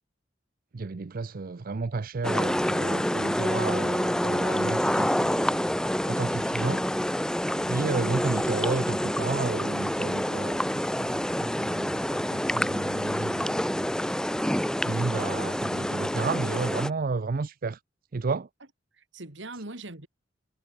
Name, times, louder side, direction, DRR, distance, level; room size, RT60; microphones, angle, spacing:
voice 1, 0.7-5.6 6.1-6.8 7.7-13.8 14.8-17.8 18.1-18.5, right 4 dB, 50° right, 0.5 m, -32 dB
sound 1, 2.2-16.9, equal, 5° left, 0.8 m, -27 dB
voice 2, 7.4-7.8 18.9-20.1, right 2 dB, 75° right, 3.1 m, -41 dB
head